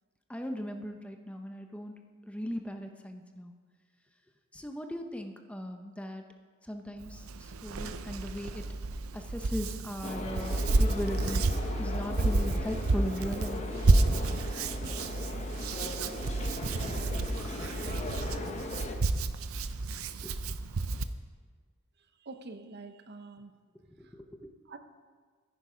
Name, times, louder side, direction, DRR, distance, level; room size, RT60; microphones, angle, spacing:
voice 1, 0.3-1.9 2.3-3.5 4.5-6.2 6.7-8.6 9.1-11.5 11.8-13.6 16.9-17.0 18.2-18.3 20.2-20.3 24.1-24.5, equal, 5° left, 5 dB, 0.7 m, -38 dB
Hands, 7.0-21.1, right 2 dB, 90° right, 0.6 m, -30 dB
sound 1, 10.0-18.9, left 2 dB, 30° left, 1.1 m, -39 dB
voice 2, 22.2-23.5 24.7-24.8, right 3 dB, 50° right, 8 dB, 0.8 m, -45 dB
13.5 x 10.5 x 5.1 m, 1.5 s
head